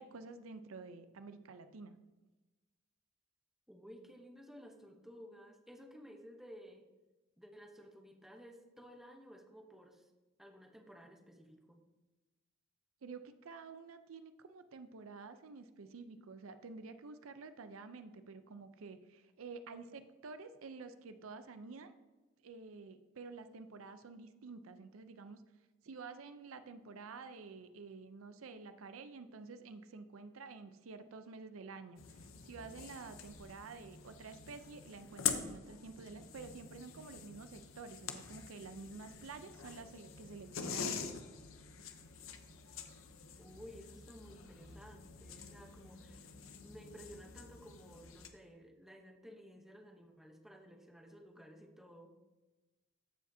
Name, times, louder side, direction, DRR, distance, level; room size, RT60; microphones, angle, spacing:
voice 1, 0.0-2.0 13.0-21.9 22.4-25.4 25.8-32.0 32.4-41.2, right 4 dB, 90° right, 10 dB, 0.5 m, -50 dB
voice 2, 3.7-6.9 7.4-10.1 10.4-11.8 43.4-46.3 46.6-52.1, equal, ahead, 2 dB, 0.8 m, -55 dB
sound 1, 32.0-48.3, left 7 dB, 75° left, 0.7 m, -45 dB
14.0 x 5.0 x 2.7 m, 1.2 s
head